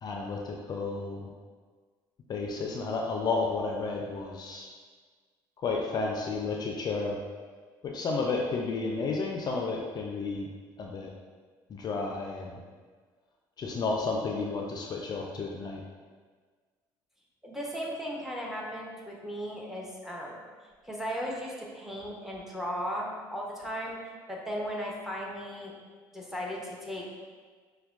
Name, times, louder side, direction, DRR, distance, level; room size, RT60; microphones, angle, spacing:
voice 1, 0.0-1.3 2.3-4.7 5.6-7.2 7.8-10.5 10.8-11.1 11.7-12.6 13.6-15.8, left 3 dB, 40° left, 0 dB, 0.4 m, -32 dB
voice 2, 17.4-20.4 20.8-24.0 24.3-25.7 26.1-27.1, equal, 5° right, -3 dB, 0.8 m, -36 dB
5.3 x 2.2 x 2.4 m, 1.5 s
supercardioid pair, 80°, 10 cm